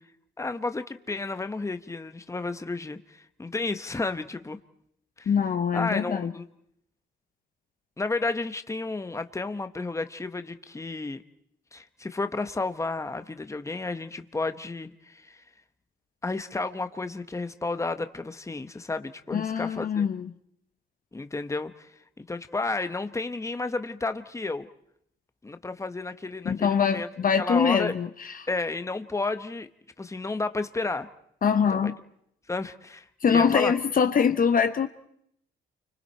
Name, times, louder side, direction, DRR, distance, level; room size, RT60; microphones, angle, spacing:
voice 1, 0.4-4.6 5.2-5.3 5.7-6.4 8.0-11.2 11.7-15.4 16.2-20.1 21.1-21.9 22.2-24.7 25.4-27.1 27.3-28.0 28.5-29.7 30.0-31.1 31.7-31.9 32.5-33.7, left 3 dB, 15° left, 10 dB, 1.1 m, -32 dB
voice 2, 5.3-6.3 19.3-20.3 26.5-28.5 31.4-31.9 33.2-34.9, left 6 dB, 45° left, 9 dB, 0.8 m, -24 dB
29.5 x 25.0 x 4.5 m, 0.71 s
cardioid pair, 90°, 20 cm